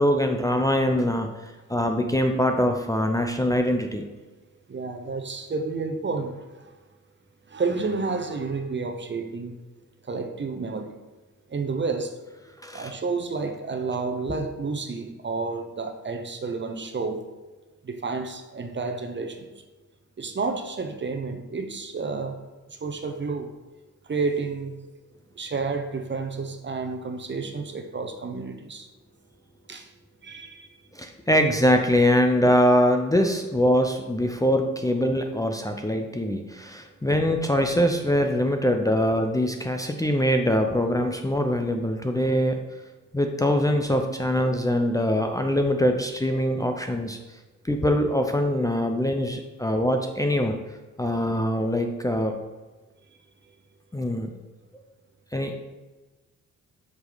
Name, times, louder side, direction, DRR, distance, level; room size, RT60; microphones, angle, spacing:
voice 1, 0.0-4.0 12.6-12.9 14.3-14.4 30.9-42.6 43.1-47.2 47.7-50.6 51.0-52.4 53.9-54.3 55.3-55.5, equal, 10° left, 4 dB, 0.6 m, -23 dB
voice 2, 4.7-6.4 7.5-9.5 10.1-10.9 11.5-12.1 12.7-17.2 17.8-19.5 20.2-22.4 22.8-23.5 24.1-24.8 25.4-28.9 29.7-29.9 30.2-30.7, right 4 dB, 35° right, 6 dB, 0.9 m, -30 dB
8.0 x 5.2 x 4.0 m, 1.2 s
cardioid pair, 90°, 31 cm